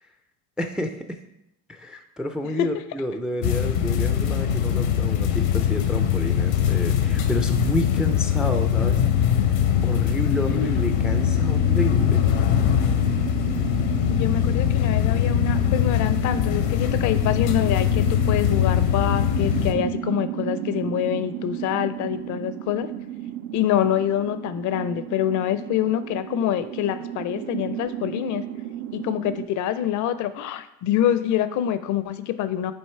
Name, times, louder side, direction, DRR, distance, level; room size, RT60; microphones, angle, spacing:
voice 1, 0.6-1.2 1.7-9.0 9.3-9.4 9.8-12.2, equal, ahead, 7 dB, 0.3 m, -30 dB
sound 1, 3.4-19.7, left 9 dB, 85° left, 0.9 m, -22 dB
voice 2, 10.3-11.2 14.1-22.9 23.5-28.4 28.9-32.7, left 11 dB, 55° left, 13 dB, 0.5 m, -26 dB
sound 2, 10.3-29.5, right 11 dB, 70° right, 0.5 m, -34 dB
7.9 x 3.0 x 4.4 m, 0.84 s
supercardioid pair, 105°, 36 cm